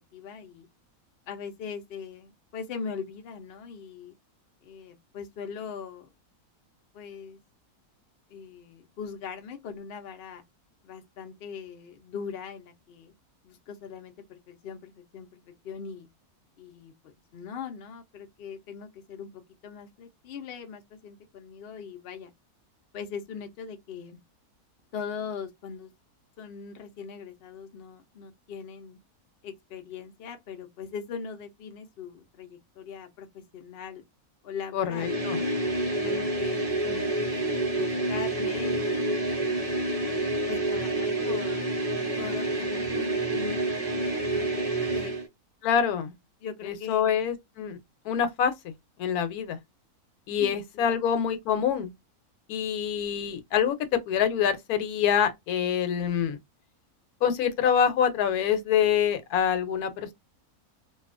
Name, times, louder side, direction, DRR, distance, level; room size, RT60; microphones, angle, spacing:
voice 1, 0.1-0.7 1.3-4.1 4.6-6.1 6.9-7.4 8.3-10.4 10.8-13.1 13.4-16.1 16.6-22.3 22.9-24.2 24.9-25.9 26.4-29.0 29.4-34.0 34.4-35.5 35.8-39.1 39.6-41.6 42.2-45.2 46.4-47.2 50.4-51.0, left 6 dB, 60° left, 0.6 m, -40 dB
voice 2, 34.7-35.4 45.6-46.1 46.6-47.8 48.0-48.7 49.0-49.6 50.3-51.9 52.5-56.4 57.2-60.1, left 8 dB, 80° left, 1.1 m, -26 dB
sound 1, 34.9-45.3, right 2 dB, 45° right, 0.5 m, -28 dB
2.7 x 2.3 x 2.4 m
omnidirectional pair, 1.6 m